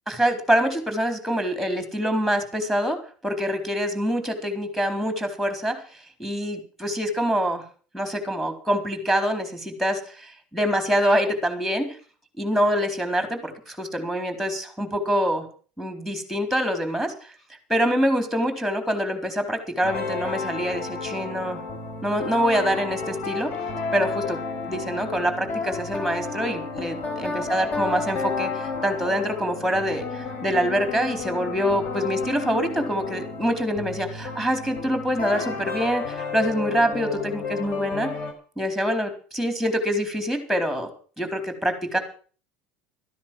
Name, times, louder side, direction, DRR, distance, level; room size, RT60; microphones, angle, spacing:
voice 1, 0.1-3.0 3.2-5.8 6.2-7.6 7.9-12.0 12.4-15.4 15.8-17.1 17.7-21.6 22.0-23.5 23.9-24.4 24.7-38.1 38.6-40.9 41.2-42.0, equal, ahead, 7 dB, 4.1 m, -25 dB
sound 1, 19.8-38.3, left 4 dB, 45° left, 4.7 m, -32 dB
13.5 x 10.5 x 7.7 m, 0.41 s
supercardioid pair, 100°, 5 cm